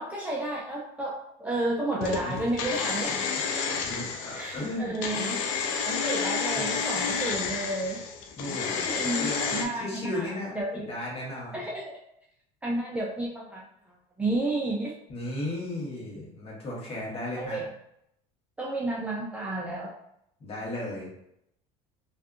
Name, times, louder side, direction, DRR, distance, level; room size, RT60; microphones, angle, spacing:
voice 1, 0.0-3.2 4.3-5.4 5.8-8.0 8.7-10.3 10.6-10.9 11.5-12.0 12.6-13.7 14.2-14.9 17.4-17.7 18.6-19.9, right 2 dB, 10° right, -4 dB, 0.3 m, -31 dB
sound 1, 2.0-9.6, left 6 dB, 80° left, 0.5 m, -30 dB
voice 2, 3.7-5.3 6.5-6.7 6.9-7.0 8.4-11.6 15.1-17.7 20.4-21.1, left 1 dB, 35° left, -4 dB, 1.2 m, -36 dB
2.6 x 2.4 x 2.3 m, 0.75 s
supercardioid pair, 125°, 16 cm